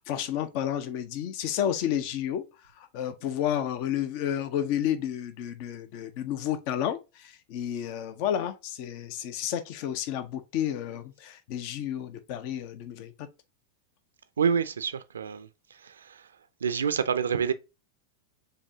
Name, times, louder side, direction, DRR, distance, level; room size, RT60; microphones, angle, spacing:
voice 1, 0.0-2.4 2.8-13.1, left 10 dB, 45° left, 0.7 m, -31 dB
voice 2, 14.4-16.3 16.6-17.5, right 7 dB, 70° right, 0.5 m, -28 dB
6.6 x 2.9 x 2.7 m
figure-of-eight pair, 90°, 0 cm